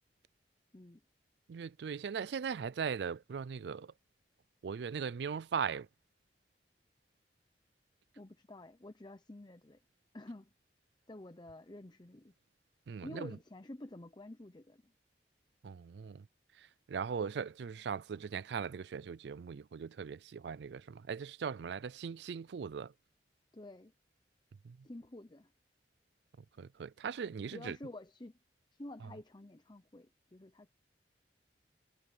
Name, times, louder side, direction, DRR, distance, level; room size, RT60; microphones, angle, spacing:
voice 1, 1.5-3.9 4.6-5.9 12.9-13.4 15.6-16.3 16.6-22.9 24.6-24.8 26.6-27.8, right 6 dB, 70° right, 0.4 m, -39 dB
voice 2, 8.2-9.8 10.1-10.5 11.1-12.3 13.0-14.8 23.5-23.9 24.8-25.5 27.5-28.3 28.7-30.7, left 1 dB, 25° left, 0.8 m, -49 dB
head